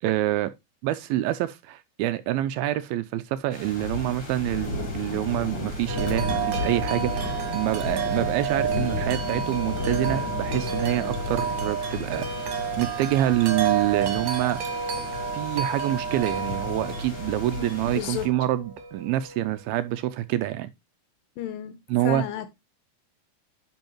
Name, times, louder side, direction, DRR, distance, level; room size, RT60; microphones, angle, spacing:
voice 1, 0.0-0.5 0.8-12.5 12.8-14.6 15.3-20.7 21.9-22.2, right 14 dB, 80° right, 2.3 m, -26 dB
sound 1, 3.5-18.3, left 3 dB, 35° left, 4.0 m, -33 dB
Wind chime, 5.9-19.8, right 7 dB, 65° right, 2.6 m, -31 dB
voice 2, 17.6-18.3 21.4-22.5, left 10 dB, 75° left, 2.3 m, -33 dB
10.5 x 5.6 x 2.9 m
omnidirectional pair, 4.6 m